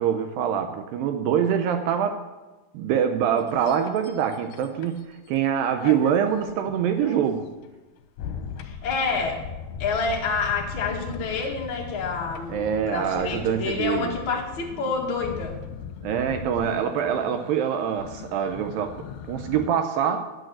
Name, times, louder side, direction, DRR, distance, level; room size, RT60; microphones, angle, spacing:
voice 1, 0.0-2.2 2.7-7.5 12.5-14.1 16.0-20.2, right 8 dB, 75° right, 7 dB, 2.3 m, -25 dB
sound 1, 3.4-5.4 5.7-19.7, left 7 dB, 85° left, 2.8 m, -39 dB
voice 2, 8.6-9.4 9.8-15.6 16.6-16.8, left 4 dB, 40° left, -1 dB, 2.3 m, -28 dB
10.5 x 9.1 x 7.7 m, 1.1 s
omnidirectional pair, 4.4 m